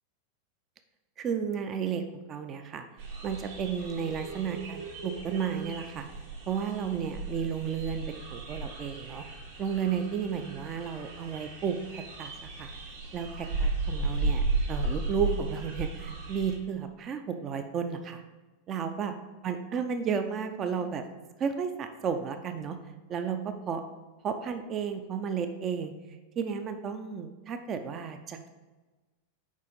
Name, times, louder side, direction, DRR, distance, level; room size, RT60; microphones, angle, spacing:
voice 1, 1.2-2.0 2.3-2.9 3.2-6.1 6.5-9.2 9.6-12.7 13.1-14.4 14.7-18.2 18.7-19.1 19.4-21.0 21.4-22.8 23.1-23.8 24.2-25.9 26.4-28.5, right 7 dB, 30° right, 7 dB, 0.5 m, -33 dB
sound 1, 3.0-16.6, right 3 dB, 60° right, 2.0 m, -35 dB
7.2 x 5.0 x 4.0 m, 1.2 s
figure-of-eight pair, 90°, 0 cm